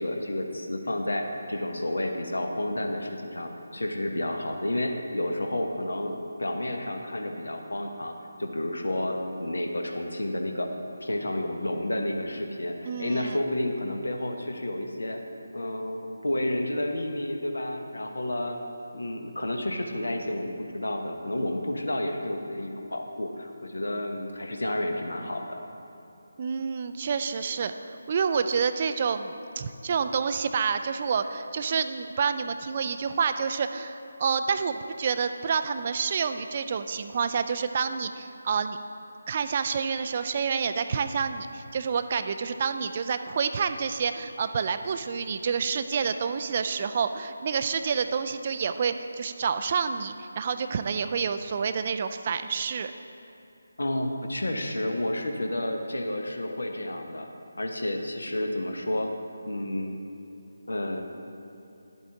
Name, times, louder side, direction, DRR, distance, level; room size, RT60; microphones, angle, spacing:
voice 1, 0.0-10.7 11.0-15.2 15.5-18.6 18.9-25.6 53.8-57.3 57.6-59.1 59.5-60.0 60.7-61.0, left 1 dB, 70° left, 4 dB, 1.0 m, -30 dB
voice 2, 12.9-13.4 26.4-38.8 39.3-52.9, right 6 dB, 35° right, 9 dB, 0.3 m, -28 dB
10.5 x 8.2 x 3.7 m, 2.8 s
figure-of-eight pair, 155°, 0 cm